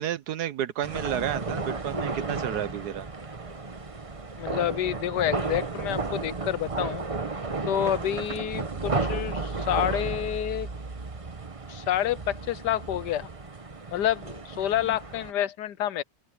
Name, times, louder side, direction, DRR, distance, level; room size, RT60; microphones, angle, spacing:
voice 1, 0.0-3.1, right 10 dB, 70° right, 1.3 m, -31 dB
sound 1, 0.8-15.3, right 3 dB, 20° right, 1.0 m, -33 dB
voice 2, 4.4-7.0 7.7-10.7 11.7-13.3 13.9-16.0, left 11 dB, 75° left, 1.3 m, -28 dB
open air
omnidirectional pair, 1.9 m